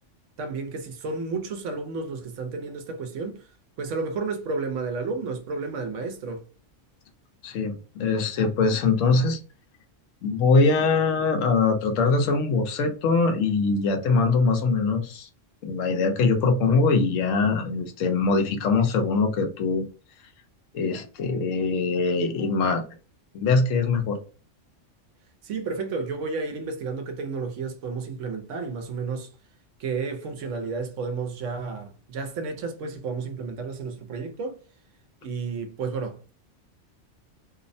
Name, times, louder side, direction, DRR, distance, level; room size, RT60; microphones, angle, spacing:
voice 1, 0.4-3.4 3.8-6.4 25.4-29.3 29.8-34.6 35.2-36.3, right 4 dB, 80° right, 1.0 m, -32 dB
voice 2, 7.4-7.7 8.0-9.4 10.2-15.3 15.6-19.8 20.7-22.8 23.3-24.2, left 4 dB, 85° left, 1.0 m, -22 dB
2.8 x 2.0 x 2.6 m
omnidirectional pair, 1.3 m